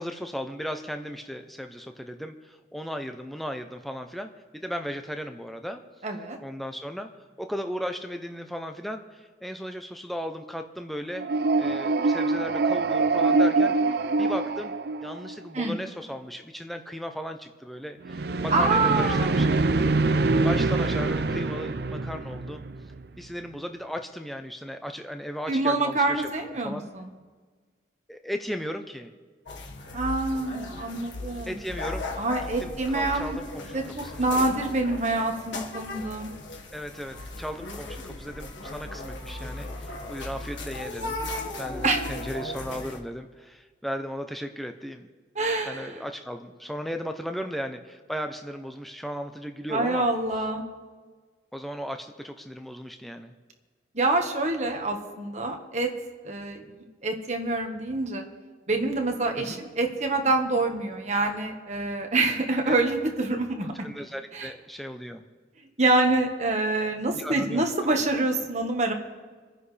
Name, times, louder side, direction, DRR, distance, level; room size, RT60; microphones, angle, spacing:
voice 1, 0.0-5.8 6.4-7.1 7.4-11.3 11.6-13.8 14.2-19.6 20.4-22.6 23.2-26.3 26.6-26.9 28.1-29.1 31.5-32.1 32.6-34.3 36.7-41.2 41.4-45.1 45.7-50.1 51.5-53.3 59.4-59.6 62.7-62.8 63.7-65.2 67.1-67.7, equal, ahead, 5 dB, 0.6 m, -36 dB
voice 2, 6.0-6.4 15.5-15.8 18.5-19.3 25.5-27.1 29.9-31.6 32.2-33.4 33.7-36.3 41.8-42.0 45.3-46.0 49.7-50.6 53.9-55.9 56.2-58.3 58.7-63.9 64.3-64.5 65.8-68.9, right 2 dB, 40° right, 3 dB, 1.4 m, -26 dB
sound 1, 11.1-15.5 18.0-23.0, right 3 dB, 60° right, 0.5 m, -24 dB
sound 2, 29.5-43.0, left 2 dB, 85° left, 1.6 m, -37 dB
28.5 x 10.0 x 3.3 m, 1.4 s
head